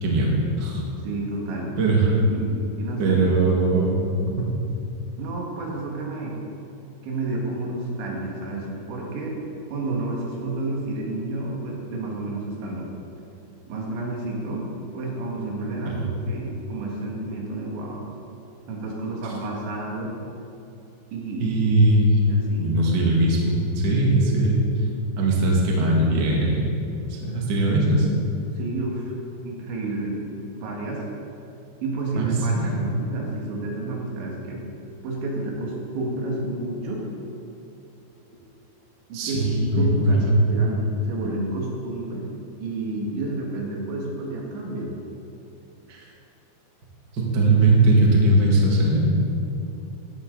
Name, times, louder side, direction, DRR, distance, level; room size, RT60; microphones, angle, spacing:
voice 1, 0.0-0.8 1.8-2.1 3.0-4.3 15.9-16.0 21.4-22.2 22.6-24.6 25.2-26.6 27.1-28.1 32.2-32.3 32.5-32.7 39.1-40.4 45.9-46.0 47.1-49.0, right 2 dB, 40° right, -3 dB, 1.5 m, -20 dB
voice 2, 1.0-1.7 2.1-3.3 5.2-6.4 7.0-9.4 9.7-12.9 13.7-18.1 18.7-20.1 21.1-21.5 22.3-22.7 27.2-27.3 28.6-29.1 29.4-31.0 31.8-34.7 35.0-37.1 39.1-40.2 40.5-42.3 42.6-45.0, right 2 dB, 75° right, -2 dB, 4.2 m, -30 dB
16.5 x 12.0 x 4.0 m, 2.7 s
omnidirectional pair, 5.4 m